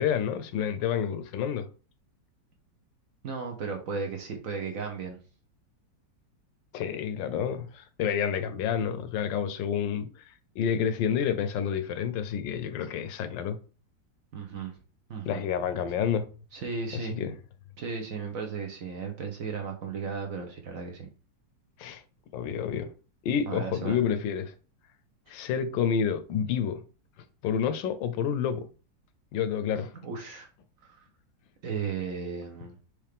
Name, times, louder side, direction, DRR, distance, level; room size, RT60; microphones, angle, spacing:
voice 1, 0.0-1.7 6.7-13.6 15.3-16.3 16.9-17.3 21.8-22.0 22.3-22.9 23.2-24.5 25.3-26.8 27.4-28.7 29.3-29.9, left 8 dB, 80° left, 1.3 m, -29 dB
voice 2, 3.2-5.2 14.3-14.7 15.1-15.4 16.5-17.2 17.8-21.1 23.5-24.0 30.0-30.5 30.8-31.0 31.6-32.8, right 5 dB, 60° right, 1.0 m, -35 dB
4.9 x 3.0 x 3.4 m
omnidirectional pair, 2.0 m